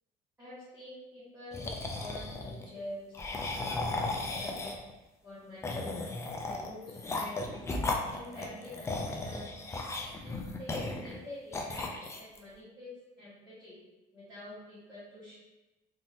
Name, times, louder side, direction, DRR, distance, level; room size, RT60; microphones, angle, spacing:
voice 1, 0.4-1.7 1.9-3.8 4.3-4.7 5.2-6.0 6.4-7.5 8.1-9.5 10.2-13.8 14.1-15.3, left 1 dB, 10° right, -13 dB, 1.3 m, -47 dB
sound 1, 1.5-2.6 3.1-4.9 5.6-11.2 11.5-12.4, left 2 dB, 15° left, 0.3 m, -36 dB
3.7 x 2.7 x 2.7 m, 1.0 s
cardioid pair, 135°, 16 cm